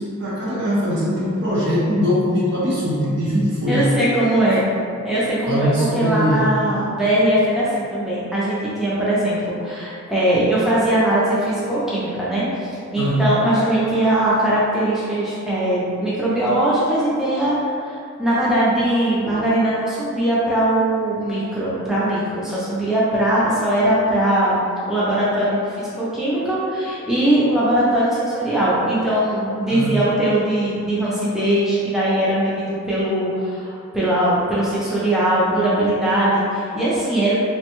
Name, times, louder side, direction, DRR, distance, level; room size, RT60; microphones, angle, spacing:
voice 1, 0.0-3.9 5.5-6.4 13.0-13.2 19.3-19.4 29.7-29.9, equal, 55° right, -8 dB, 0.9 m, -21 dB
voice 2, 3.7-4.7 5.0-5.7 5.9-24.6 24.9-37.3, right 1 dB, ahead, -10 dB, 0.4 m, -20 dB
3.3 x 2.1 x 2.9 m, 2.5 s
head